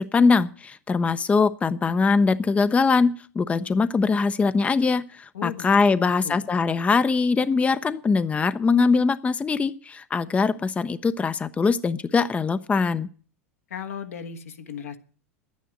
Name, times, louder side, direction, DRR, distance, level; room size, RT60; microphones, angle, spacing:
voice 1, 0.0-13.1, left 4 dB, 15° left, 13 dB, 0.6 m, -22 dB
voice 2, 5.3-5.7 6.0-6.5 13.7-15.0, left 8 dB, 80° left, 6 dB, 1.5 m, -36 dB
11.0 x 9.5 x 9.0 m, 0.42 s
hypercardioid pair, 95°, 8 cm